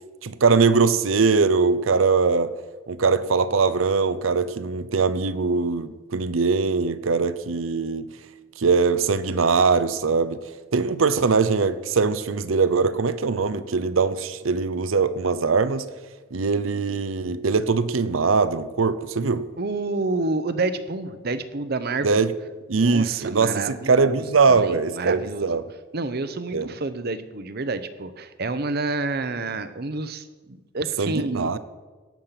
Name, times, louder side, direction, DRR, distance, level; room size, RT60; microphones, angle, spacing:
voice 1, 0.2-2.5 2.9-8.1 8.6-10.4 10.7-15.8 16.3-19.4 22.0-22.3 22.7-25.6 26.5-26.7 31.0-31.6, right 4 dB, 85° right, 14 dB, 0.7 m, -21 dB
voice 2, 19.6-22.2 22.8-25.5 25.9-31.6, right 3 dB, 50° right, 12 dB, 0.8 m, -29 dB
18.0 x 7.5 x 5.8 m, 1.3 s
head